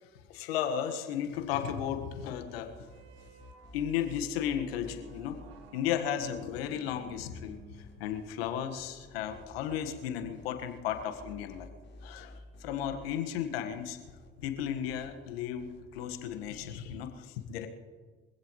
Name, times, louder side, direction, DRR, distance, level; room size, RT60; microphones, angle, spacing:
voice 1, 0.3-2.7 3.7-5.4 5.7-11.7 12.0-14.0 14.4-15.7 15.9-17.7, left 9 dB, 80° left, 7 dB, 1.6 m, -34 dB
sound 1, 1.7-16.7, left 2 dB, 40° left, 4.3 m, -54 dB
sound 2, 2.8-10.6, right 6 dB, 75° right, 2.1 m, -57 dB
24.5 x 16.0 x 3.2 m, 1.5 s
hypercardioid pair, 60°, 30 cm